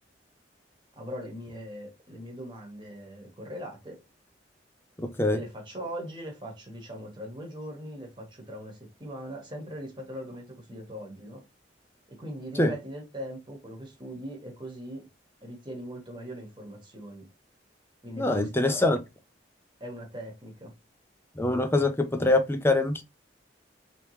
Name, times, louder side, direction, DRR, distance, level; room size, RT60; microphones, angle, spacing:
voice 1, 1.0-4.0 5.3-11.4 12.1-15.1 15.4-17.3 18.0-18.8 19.8-20.7, equal, 25° right, 1.2 m, -40 dB
voice 2, 5.0-5.4 12.6-12.7 18.2-19.0 21.4-23.0, left 2 dB, 15° left, 0.5 m, -24 dB
3.2 x 2.9 x 3.1 m
head